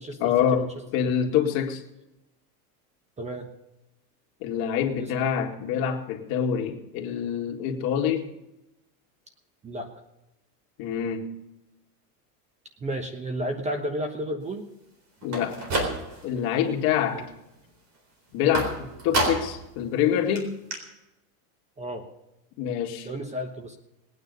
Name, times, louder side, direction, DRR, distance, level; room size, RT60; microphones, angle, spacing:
voice 1, 0.2-1.8 4.4-8.3 10.8-11.3 15.2-15.7 16.2-17.3 18.3-18.7 19.0-20.6 22.6-23.1, left 8 dB, 50° left, 2 dB, 2.3 m, -26 dB
voice 2, 3.2-3.5 5.0-5.1 9.6-9.9 12.8-14.7 17.1-17.2 21.8-22.1 23.0-23.8, right 1 dB, 15° right, 7 dB, 1.1 m, -32 dB
sound 1, 15.2-16.4 16.8-17.3 18.5-19.7 20.0-20.1 20.4-20.5 20.7-20.8, right 2 dB, 35° right, 4.0 m, -29 dB
20.0 x 9.5 x 5.4 m, 0.92 s
supercardioid pair, 145°, 47 cm